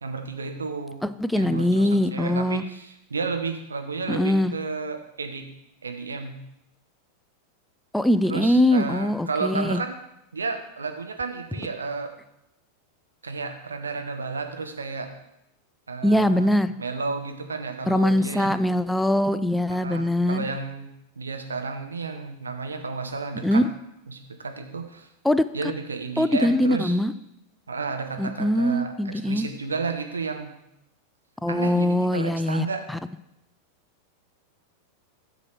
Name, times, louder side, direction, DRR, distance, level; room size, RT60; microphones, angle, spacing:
voice 1, 0.0-1.0 1.3-5.5 5.8-6.4 8.2-10.0 10.3-12.1 13.2-15.1 15.9-18.6 19.7-23.6 24.1-25.1 25.5-27.0 27.7-30.5 31.5-32.9, right 4 dB, 75° right, 6 dB, 0.9 m, -32 dB
voice 2, 1.0-2.6 4.1-4.5 7.9-9.8 16.0-16.7 17.9-20.5 23.4-23.7 25.2-25.4 26.2-27.1 28.2-29.5 31.4-32.7, left 1 dB, 5° left, 13 dB, 0.4 m, -22 dB
8.6 x 6.2 x 4.5 m, 0.84 s
figure-of-eight pair, 90°, 0 cm